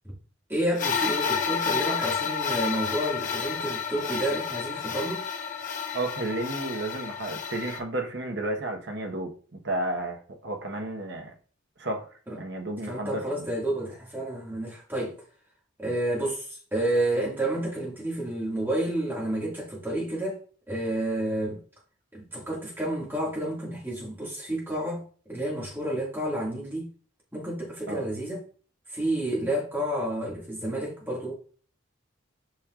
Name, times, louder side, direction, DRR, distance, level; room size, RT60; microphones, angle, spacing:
voice 1, 0.5-5.2 12.3-12.4 12.9-15.1 15.8-20.4 20.7-21.6 22.1-26.9 27.3-28.4 28.9-31.4, right 1 dB, 10° right, 2.1 m, -30 dB
sound 1, 0.8-7.8, left 6 dB, 40° left, 0.9 m, -30 dB
voice 2, 5.9-11.3 11.8-12.1 12.4-13.5 27.9-28.0, right 1 dB, 60° right, 1.2 m, -32 dB
7.6 x 5.3 x 2.5 m
head